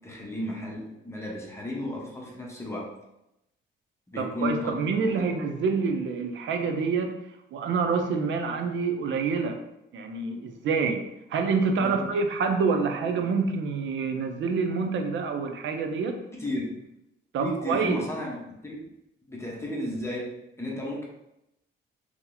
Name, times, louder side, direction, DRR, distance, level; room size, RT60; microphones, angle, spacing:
voice 1, 0.0-3.0 4.1-4.7 11.8-12.1 16.3-16.8 17.4-18.9 19.3-21.1, left 1 dB, 15° left, -3 dB, 0.9 m, -33 dB
voice 2, 4.1-7.2 7.5-9.6 9.9-16.2 17.3-18.1, right 5 dB, 70° right, 5 dB, 0.6 m, -27 dB
2.9 x 2.8 x 3.9 m, 0.85 s
cardioid pair, 90°, 20 cm